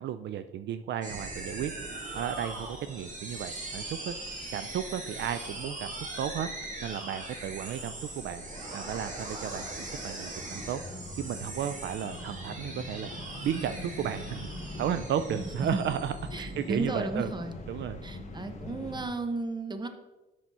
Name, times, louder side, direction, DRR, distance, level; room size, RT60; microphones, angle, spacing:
voice 1, 0.0-4.2 4.5-6.5 6.8-8.4 8.7-10.8 11.2-13.1 13.4-14.5 14.8-17.3 17.7-18.0, right 9 dB, 65° right, 11 dB, 0.4 m, -34 dB
sound 1, 1.0-16.8, right 2 dB, 40° right, 2.0 m, -41 dB
sound 2, 1.1-19.1, left 1 dB, 35° left, 1.1 m, -44 dB
voice 2, 16.3-17.5 18.0-19.9, right 3 dB, 20° right, 7 dB, 1.0 m, -33 dB
6.1 x 5.8 x 5.5 m, 1.1 s
cardioid pair, 90°, 20 cm